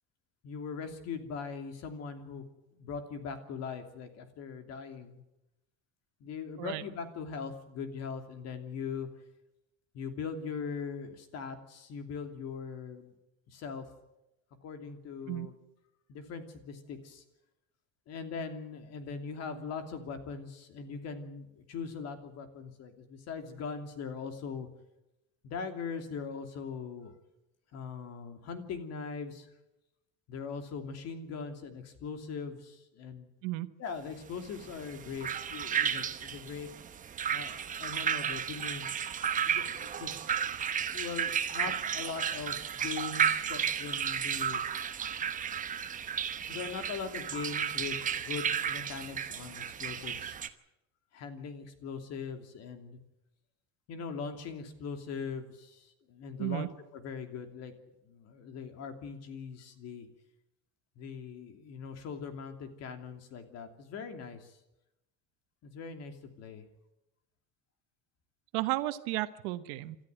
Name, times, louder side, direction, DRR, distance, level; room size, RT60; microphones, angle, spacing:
voice 1, 0.4-2.4 2.7-5.2 6.2-9.1 9.9-13.1 13.5-13.9 14.6-15.5 16.1-17.2 18.1-24.7 25.4-27.1 27.7-29.5 30.3-33.3 33.8-36.7 37.3-38.8 39.5-40.5 40.9-44.6 46.4-50.4 51.1-53.0 53.9-57.7 58.0-60.1 61.0-64.6 65.6-66.7, left 5 dB, 50° left, 7 dB, 2.9 m, -41 dB
sound 1, 34.5-50.5, right 8 dB, 25° right, 1.0 m, -33 dB
voice 2, 68.5-70.0, right 18 dB, 80° right, 11 dB, 1.2 m, -33 dB
27.5 x 13.5 x 9.1 m, 0.91 s
cardioid pair, 150°, 34 cm